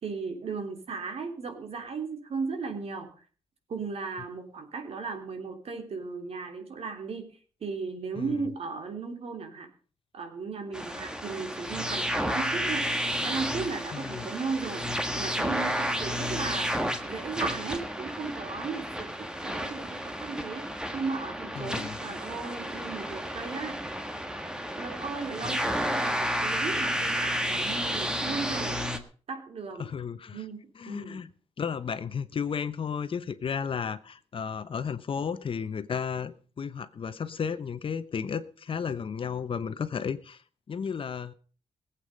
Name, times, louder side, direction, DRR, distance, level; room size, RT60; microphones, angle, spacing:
voice 1, 0.0-3.1 3.7-7.3 7.6-9.7 10.1-12.9 13.2-14.8 15.1-19.1 19.4-23.8 24.7-28.8 29.3-29.9 30.3-31.2, right 4 dB, 60° right, 3.4 m, -36 dB
sound 1, 10.7-29.0, equal, 5° right, 1.6 m, -31 dB
voice 2, 13.9-14.3 21.6-22.0 29.8-30.4 30.8-31.3 31.6-40.4 40.7-41.3, left 6 dB, 50° left, 0.9 m, -33 dB
19.5 x 8.4 x 5.3 m
wide cardioid pair, 110°, 11 cm